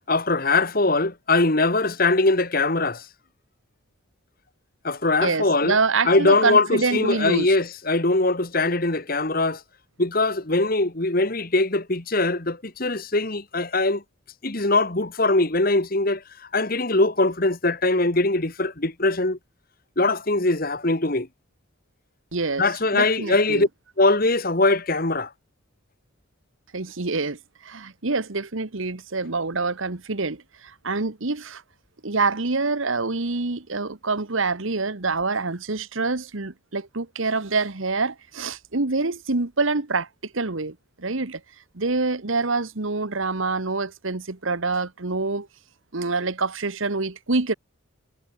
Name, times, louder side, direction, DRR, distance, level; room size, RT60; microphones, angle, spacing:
voice 1, 0.1-3.1 4.8-5.8 6.1-9.6 10.0-14.0 14.4-16.2 16.5-19.4 20.0-21.3 22.6-23.7 24.0-25.3, left 2 dB, 45° left, 1.7 m, -21 dB
voice 2, 5.2-7.5 22.3-22.6 22.9-23.7 26.7-31.6 32.0-40.1 40.3-41.4 41.7-45.5 45.9-47.5, right 3 dB, 70° right, 1.4 m, -26 dB
head